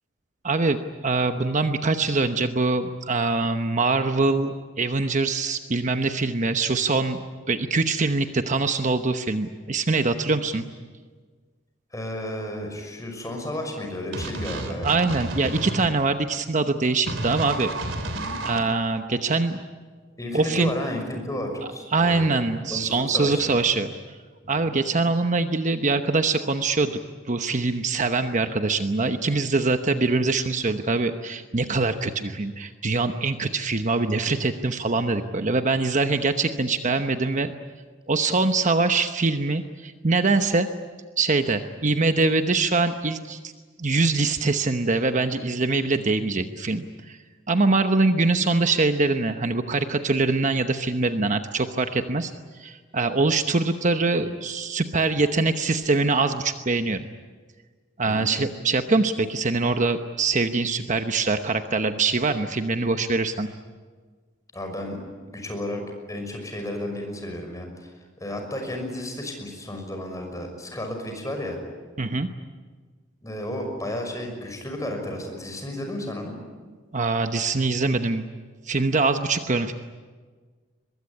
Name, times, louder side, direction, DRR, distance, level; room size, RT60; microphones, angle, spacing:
voice 1, 0.4-7.2 7.5-10.6 14.8-17.7 18.4-19.6 20.3-20.7 21.9-23.9 24.5-27.0 27.3-37.5 38.1-40.7 41.2-43.4 43.8-47.2 47.5-52.3 52.6-57.1 58.0-63.5 72.0-72.3 76.9-78.2 78.7-79.7, right 3 dB, 40° right, 8 dB, 1.0 m, -23 dB
voice 2, 11.9-14.9 18.1-18.4 20.2-22.4 22.7-23.4 24.4-24.7 58.1-58.3 64.5-65.0 65.2-65.8 66.1-67.9 68.2-71.6 73.2-76.4, left 1 dB, 15° left, 4 dB, 5.9 m, -32 dB
sound 1, 14.1-15.9 17.1-18.6, right 2 dB, 75° right, 3.4 m, -31 dB
23.0 x 22.0 x 9.7 m, 1.5 s
head